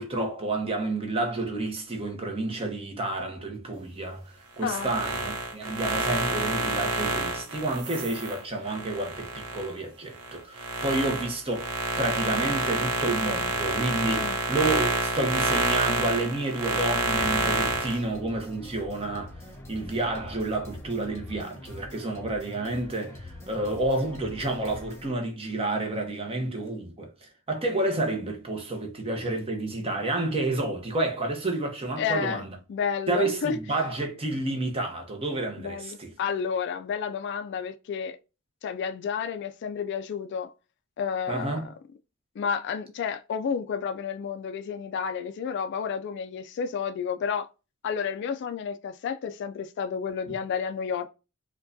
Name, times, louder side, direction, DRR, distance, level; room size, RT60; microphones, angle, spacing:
voice 1, 0.0-11.7 12.0-19.3 19.7-32.6 33.1-36.1 41.3-41.7 50.3-50.4, right 2 dB, 25° right, 0.8 m, -30 dB
sound 1, 4.6-9.7 10.1-18.0, right 3 dB, 90° right, 0.7 m, -28 dB
sound 2, 17.1-25.1, left 1 dB, 15° left, 1.0 m, -43 dB
voice 2, 32.0-32.4 32.7-33.6 35.6-38.2 38.6-40.5 41.0-41.7 42.4-47.5 47.8-51.1, left 7 dB, 55° left, 0.3 m, -31 dB
4.5 x 2.2 x 2.6 m
head